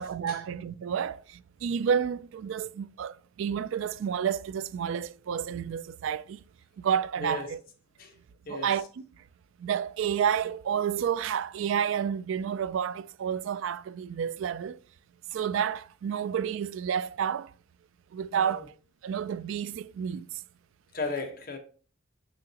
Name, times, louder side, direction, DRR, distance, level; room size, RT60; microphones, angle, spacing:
voice 1, 0.0-6.4 6.8-7.6 8.5-8.9 9.6-14.8 15.3-17.5 18.1-18.7 19.0-20.4, right 8 dB, 70° right, 0.3 m, -30 dB
voice 2, 7.2-7.5 8.0-8.1 8.4-8.7 18.3-18.6 20.9-21.6, left 3 dB, 45° left, 1.2 m, -35 dB
6.4 x 6.2 x 2.8 m
head